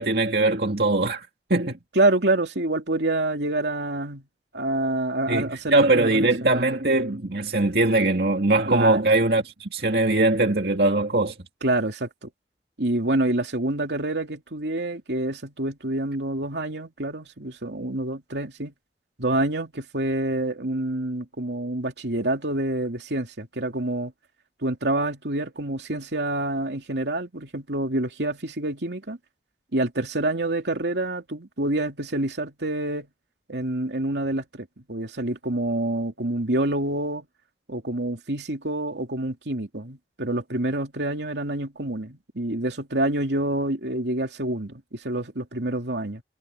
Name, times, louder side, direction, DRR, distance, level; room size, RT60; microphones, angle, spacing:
voice 1, 0.0-1.8 5.3-11.4, right 2 dB, 65° right, 2.2 m, -21 dB
voice 2, 1.9-4.2 4.5-6.5 8.7-9.2 11.6-12.3 12.8-18.7 19.2-24.1 24.6-29.2 29.7-33.1 33.5-37.3 37.7-46.2, right 1 dB, 80° right, 2.8 m, -27 dB
head